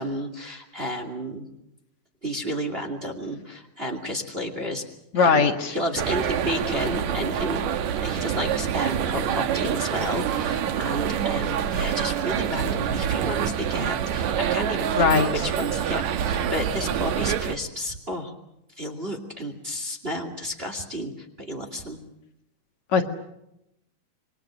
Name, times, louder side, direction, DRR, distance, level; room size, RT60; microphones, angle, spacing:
voice 1, 0.0-1.5 2.2-4.8 5.1-7.6 8.0-15.1 15.4-18.3 18.8-22.0, equal, 20° right, 4 dB, 2.4 m, -31 dB
voice 2, 5.1-5.7 15.0-15.4 22.9-23.0, left 5 dB, 60° left, 4 dB, 3.0 m, -20 dB
sound 1, 6.0-17.6, right 9 dB, 65° right, 2.3 m, -26 dB
27.5 x 23.5 x 6.4 m, 0.84 s
omnidirectional pair, 3.7 m